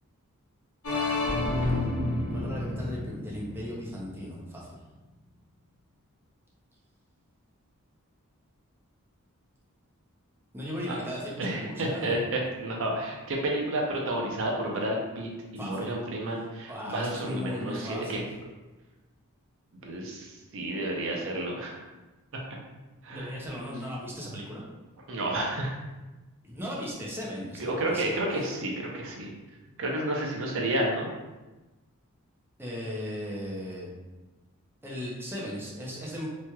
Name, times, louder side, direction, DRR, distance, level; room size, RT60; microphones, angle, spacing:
sound 1, 0.8-4.6, left 2 dB, 85° left, 1.0 m, -30 dB
voice 1, 2.3-4.7 10.5-12.2 15.6-16.0 16.7-18.3 23.1-24.6 26.4-28.1 32.6-33.9 34.8-36.3, equal, 10° right, -5 dB, 0.6 m, -37 dB
voice 2, 11.4-18.2 19.7-21.8 23.0-23.3 25.1-25.8 27.6-29.3 29.8-31.1, right 1 dB, 65° right, 0 dB, 0.6 m, -31 dB
3.0 x 2.9 x 2.2 m, 1.1 s
head